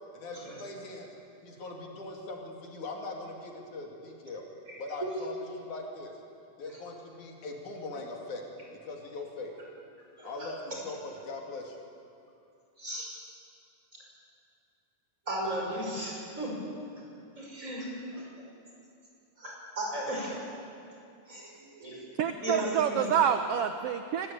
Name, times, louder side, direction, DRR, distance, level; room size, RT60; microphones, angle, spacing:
voice 1, 0.1-1.1 1.4-4.4 4.8-6.1 6.6-8.4 8.8-9.5 10.2-11.8, left 3 dB, 70° left, 0 dB, 3.9 m, -40 dB
voice 2, 10.2-10.5 12.8-13.1 15.3-16.5 17.4-18.2 19.4-20.3 21.3-23.0, right 1 dB, 25° right, -3 dB, 6.1 m, -36 dB
voice 3, 22.2-24.3, right 8 dB, 75° right, 7 dB, 1.4 m, -27 dB
25.0 x 16.5 x 8.9 m, 2.6 s
omnidirectional pair, 3.6 m